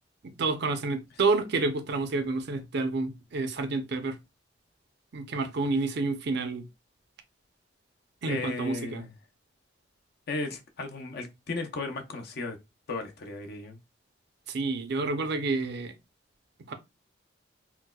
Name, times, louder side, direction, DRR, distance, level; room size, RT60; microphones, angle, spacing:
voice 1, 0.2-4.2 5.1-6.6 8.2-9.0 14.5-15.9 16.6-16.7, right 3 dB, 60° right, 0.6 m, -29 dB
voice 2, 8.2-9.1 10.3-12.6 12.9-13.8, left 3 dB, 55° left, 0.7 m, -35 dB
4.4 x 2.1 x 2.2 m
head